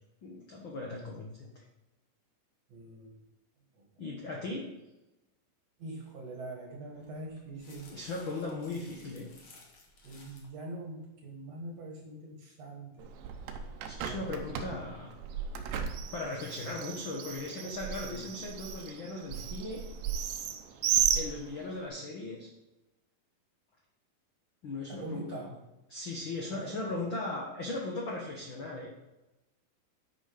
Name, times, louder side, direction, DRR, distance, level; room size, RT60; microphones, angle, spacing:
voice 1, 0.2-1.6 4.0-4.7 7.9-9.3 13.8-15.1 16.1-19.8 21.1-22.5 24.6-25.5 25.9-28.9, left 2 dB, 80° left, -1 dB, 1.1 m, -38 dB
voice 2, 2.7-3.2 5.8-7.9 10.0-13.1 14.0-14.5 18.0-18.2 24.9-25.5 26.5-26.7, right 2 dB, 55° right, 1 dB, 2.1 m, -43 dB
sound 1, 6.9-10.5, left 3 dB, 50° left, 1.7 m, -57 dB
Bird, 13.0-21.9, right 8 dB, 80° right, 2.4 m, -35 dB
9.7 x 5.1 x 4.9 m, 1.0 s
omnidirectional pair, 4.1 m